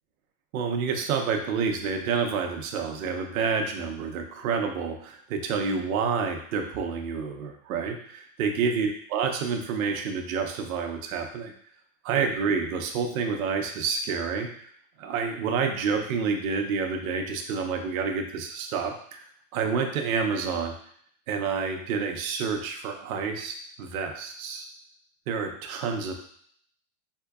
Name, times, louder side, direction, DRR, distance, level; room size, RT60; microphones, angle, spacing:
voice 1, 0.5-11.5 12.0-14.7 15.0-20.7 21.3-24.6 25.3-26.1, right 5 dB, 90° right, 4 dB, 0.7 m, -29 dB
3.7 x 2.8 x 2.3 m, 0.63 s
supercardioid pair, 170°, 40 cm